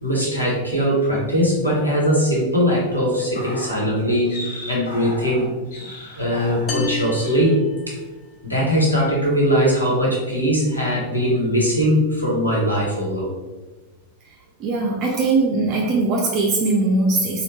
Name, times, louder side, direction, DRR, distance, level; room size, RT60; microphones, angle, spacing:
voice 1, 0.0-5.4 5.8-5.9 6.2-7.5 8.4-13.3, equal, 85° left, -5 dB, 1.2 m, -20 dB
sound 1, 3.2-6.9 7.2-7.5 7.9-8.1, left 1 dB, 60° left, 1.1 m, -37 dB
sound 2, 6.7-8.4, left 2 dB, 25° left, 0.4 m, -32 dB
voice 2, 14.6-17.4, right 3 dB, 35° right, -2 dB, 0.5 m, -20 dB
4.1 x 2.5 x 3.2 m, 1.2 s
figure-of-eight pair, 90°, 0 cm